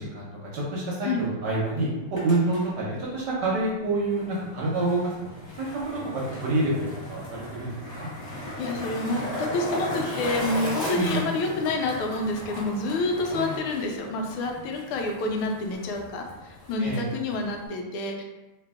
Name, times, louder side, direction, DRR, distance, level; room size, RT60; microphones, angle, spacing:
voice 1, 0.0-5.1 5.6-8.1 10.9-11.3 16.8-17.0, right 2 dB, 65° right, -5 dB, 1.1 m, -27 dB
Skateboard, 1.9-17.7, left 1 dB, 20° left, 0.7 m, -36 dB
voice 2, 8.6-18.2, left 2 dB, 80° left, 2 dB, 1.5 m, -28 dB
3.2 x 2.9 x 3.4 m, 1.0 s
omnidirectional pair, 2.4 m